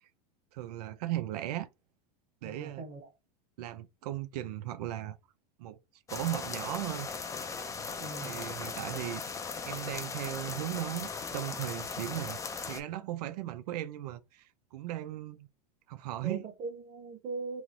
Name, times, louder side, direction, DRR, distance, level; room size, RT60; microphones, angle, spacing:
voice 1, 0.5-1.7 2.4-2.8 3.6-5.2 5.6-5.8 6.1-7.1 8.2-9.2 9.6-12.4 12.7-15.5 15.9-16.5, right 14 dB, 80° right, 0.5 m, -37 dB
voice 2, 2.4-3.1 8.0-8.5 16.2-17.6, right 4 dB, 35° right, 1.1 m, -40 dB
sound 1, 6.1-12.8, left 5 dB, 15° left, 0.5 m, -38 dB
3.1 x 2.0 x 3.8 m
supercardioid pair, 115°, 20 cm